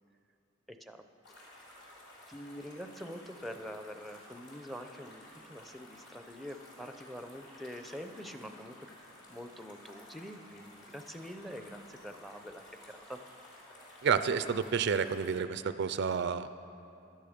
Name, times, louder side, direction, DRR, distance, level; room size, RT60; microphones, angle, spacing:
voice 1, 0.7-1.0 2.3-8.8 9.3-13.2, equal, ahead, 7 dB, 0.6 m, -45 dB
sound 1, 1.2-15.4, left 1 dB, 60° left, 3.4 m, -54 dB
voice 2, 14.0-16.5, right 6 dB, 60° right, 12 dB, 0.4 m, -30 dB
16.0 x 11.5 x 5.1 m, 2.8 s
head